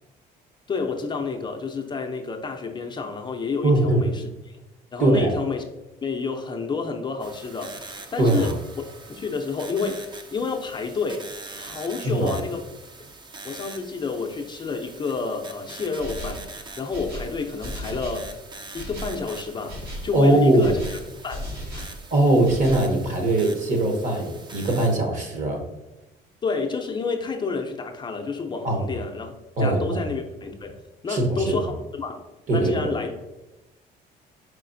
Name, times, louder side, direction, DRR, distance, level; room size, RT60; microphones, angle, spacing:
voice 1, 0.7-4.6 4.9-5.6 6.0-8.5 9.1-11.3 11.6-12.6 13.4-16.4 16.8-18.3 18.7-19.8 20.0-21.0 21.2-21.9 26.4-29.3 29.6-33.2, left 4 dB, 25° left, 2 dB, 0.5 m, -29 dB
voice 2, 3.6-4.1 5.0-5.3 8.2-8.5 12.0-12.4 20.1-20.7 22.1-25.6 28.6-28.8 29.6-30.0 31.1-31.6 32.5-32.9, right 1 dB, 50° right, 3 dB, 1.0 m, -21 dB
sound 1, 7.2-25.0, right 3 dB, 25° right, 0.5 m, -43 dB
sound 2, 16.0-16.5 16.9-18.3 18.8-19.2 19.7-20.1 20.6-22.0 22.4-22.9, equal, 70° right, 1.2 m, -35 dB
4.9 x 3.8 x 2.6 m, 1.0 s
cardioid pair, 110°, 17 cm